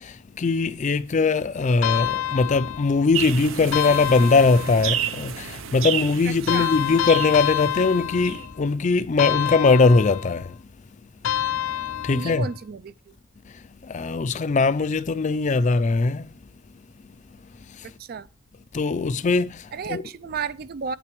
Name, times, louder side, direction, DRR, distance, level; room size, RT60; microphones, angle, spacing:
voice 1, 0.4-10.5 12.0-12.4 13.9-16.3 18.7-19.5 19.9-20.0, left 4 dB, 35° left, 0.4 m, -21 dB
sound 1, 1.8-3.1 3.7-5.0 6.5-8.7 9.2-10.5 11.2-12.5, left 11 dB, 85° left, 0.8 m, -27 dB
sound 2, 3.1-8.5, right 9 dB, 85° right, 0.7 m, -31 dB
voice 2, 6.3-6.7 12.1-13.1 17.8-18.3 19.7-21.0, right 6 dB, 50° right, 0.4 m, -33 dB
9.0 x 8.8 x 3.1 m
head